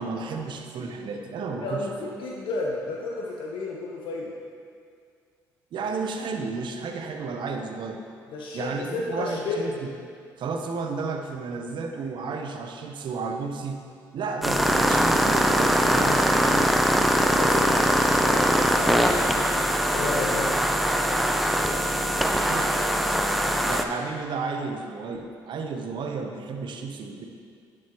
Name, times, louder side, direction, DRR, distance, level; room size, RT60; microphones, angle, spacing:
voice 1, 0.0-2.1 5.7-8.0 8.5-9.9 10.4-13.8 14.1-16.7 22.4-27.3, right 4 dB, 60° right, 4 dB, 0.8 m, -32 dB
voice 2, 1.6-4.3 8.3-9.6 17.2-19.4 19.9-20.5, left 3 dB, 65° left, -2 dB, 0.9 m, -32 dB
sound 1, 14.4-23.8, equal, ahead, 0.6 m, -22 dB
11.0 x 6.2 x 3.0 m, 2.2 s
hypercardioid pair, 55°, 9 cm